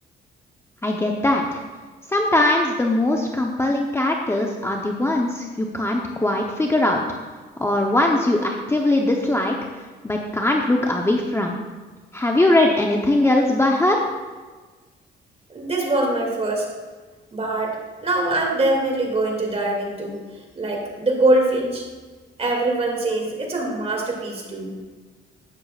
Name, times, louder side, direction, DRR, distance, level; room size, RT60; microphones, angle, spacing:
voice 1, 0.8-1.6 2.1-7.0 7.6-9.5 10.0-11.6 12.1-14.0, left 1 dB, 15° left, 0 dB, 0.9 m, -20 dB
voice 2, 15.5-16.7 17.3-20.2 20.6-21.8 22.4-24.7, right 2 dB, 30° right, 0 dB, 2.5 m, -23 dB
12.0 x 8.8 x 2.4 m, 1.4 s
cardioid pair, 90°, 20 cm